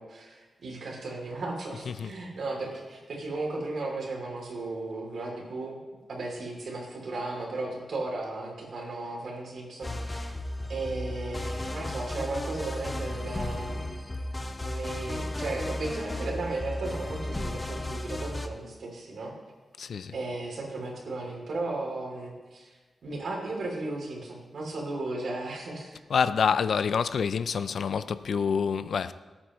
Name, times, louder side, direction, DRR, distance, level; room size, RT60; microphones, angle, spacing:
voice 1, 0.0-5.8 6.1-10.4 10.7-14.0 14.6-19.3 20.1-22.8 23.0-26.0, right 2 dB, 70° right, 3.0 m, -35 dB
voice 2, 1.8-2.2 19.8-20.2 26.1-29.1, left 6 dB, 75° left, 0.4 m, -27 dB
sound 1, 9.8-18.5, left 1 dB, 20° left, 0.7 m, -34 dB
17.5 x 8.7 x 3.1 m
wide cardioid pair, 130°, 0 cm